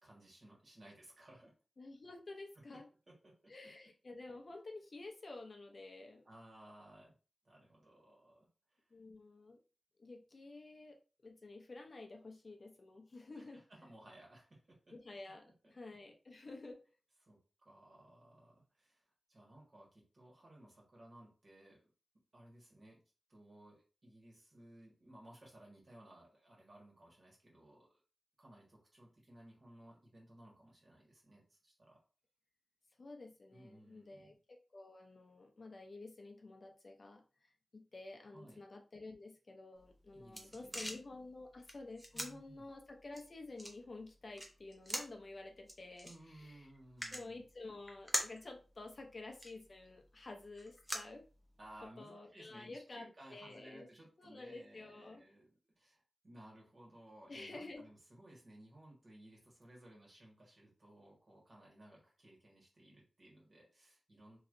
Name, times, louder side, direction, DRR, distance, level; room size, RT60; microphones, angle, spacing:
voice 1, 0.0-1.5 2.5-2.6 3.1-3.9 6.2-7.1 7.4-8.9 13.3-15.0 15.3-15.9 17.2-21.8 22.3-23.0 23.3-28.0 28.4-32.0 33.5-34.4 38.3-38.6 40.1-41.0 42.1-42.6 46.0-47.4 51.6-64.4, right 1 dB, 50° right, -3 dB, 1.6 m, -59 dB
voice 2, 1.8-2.9 3.5-6.2 8.9-9.6 10.0-11.0 11.2-13.6 14.9-16.8 33.0-46.6 47.1-51.3 51.8-53.9 54.2-55.2 57.3-57.9, left 2 dB, 45° left, 3 dB, 0.5 m, -51 dB
sound 1, 39.8-51.8, equal, 5° right, 0.6 m, -46 dB
3.0 x 2.8 x 2.6 m, 0.35 s
wide cardioid pair, 115°, 0 cm